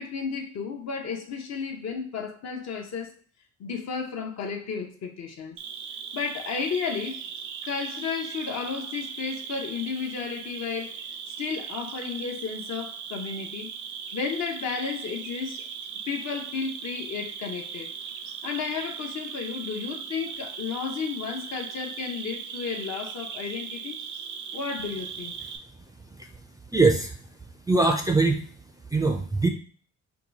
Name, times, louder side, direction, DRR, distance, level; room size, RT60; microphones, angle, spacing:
voice 1, 0.0-3.1 3.6-5.6 6.1-7.2 7.6-11.0 11.4-13.7 14.1-15.6 16.1-17.9 18.4-24.0 24.5-25.3, left 5 dB, 60° left, 0.8 m, -33 dB
Cricket, 5.6-25.6, right 7 dB, 75° right, 0.5 m, -38 dB
voice 2, 26.7-27.2 27.7-28.4 28.9-29.5, right 3 dB, 15° right, 0.3 m, -22 dB
2.9 x 2.3 x 3.9 m
cardioid pair, 90°, 30 cm